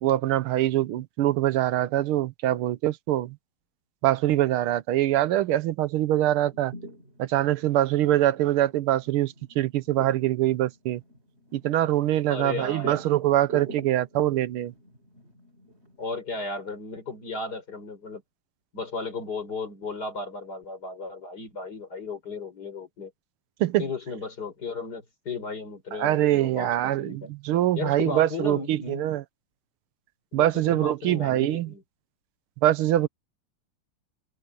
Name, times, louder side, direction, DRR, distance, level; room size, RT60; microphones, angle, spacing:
voice 1, 0.0-3.4 4.0-6.7 7.2-11.0 11.5-14.7 23.6-23.8 25.9-29.2 30.3-31.7 32.6-33.1, right 13 dB, 85° right, 1.7 m, -24 dB
sound 1, 6.3-16.0, right 3 dB, 30° right, 4.1 m, -45 dB
voice 2, 12.3-13.1 16.0-18.2 18.7-23.1 23.8-27.3 27.7-29.1 30.3-31.8, left 3 dB, 45° left, 4.8 m, -35 dB
omnidirectional pair, 2.3 m